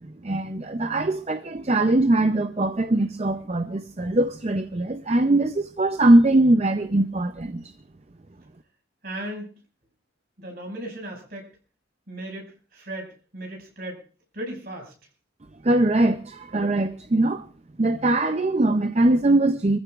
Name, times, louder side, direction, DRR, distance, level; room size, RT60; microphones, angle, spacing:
voice 1, 0.0-7.7 15.6-17.5 17.8-19.8, right 2 dB, 35° right, 0.6 m, -21 dB
voice 2, 9.0-9.5 10.4-11.5 12.1-12.5 12.7-14.0 14.3-14.9, right 1 dB, 55° right, 5.8 m, -36 dB
24.5 x 15.0 x 2.5 m
head